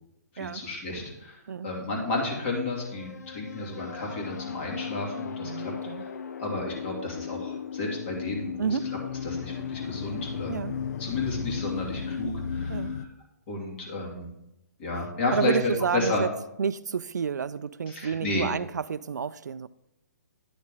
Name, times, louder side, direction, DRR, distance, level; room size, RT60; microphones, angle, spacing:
voice 1, 0.3-5.7 6.0-6.1 6.4-8.7 9.2-10.6 11.0-13.1 13.5-14.3 14.8-16.2 17.9-18.5, left 2 dB, 40° left, -1 dB, 2.7 m, -32 dB
sound 1, 2.8-13.1, left 6 dB, 65° left, 0.6 m, -35 dB
voice 2, 5.4-6.1 8.6-8.9 10.5-10.8 12.7-12.9 15.3-16.3 16.6-19.7, right 6 dB, 80° right, 15 dB, 0.4 m, -30 dB
10.0 x 6.4 x 3.8 m, 0.86 s
hypercardioid pair, 135°, 9 cm